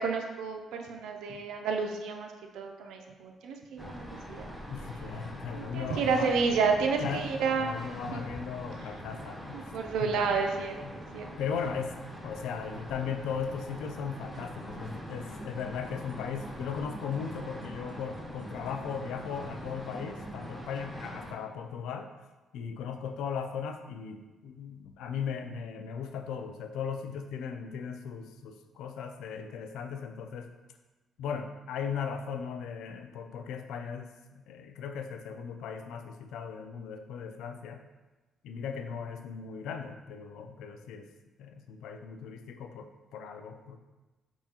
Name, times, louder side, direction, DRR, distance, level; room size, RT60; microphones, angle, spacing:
voice 1, 0.0-4.5 5.5-7.8 8.1-8.2 9.5-11.3, right 5 dB, 85° right, 3 dB, 0.4 m, -30 dB
sound 1, 3.8-21.3, equal, ahead, 0.7 m, -44 dB
voice 2, 4.7-6.4 7.0-7.2 7.6-9.7 10.0-10.2 10.8-10.9 11.4-11.9 12.2-22.1 22.5-30.5 31.2-37.8 38.4-41.1 41.4-43.8, left 6 dB, 85° left, 6 dB, 0.3 m, -37 dB
sound 2, 14.1-20.7, right 1 dB, 30° right, 1.4 m, -48 dB
4.8 x 3.6 x 2.8 m, 1.2 s
cardioid pair, 90°, 0 cm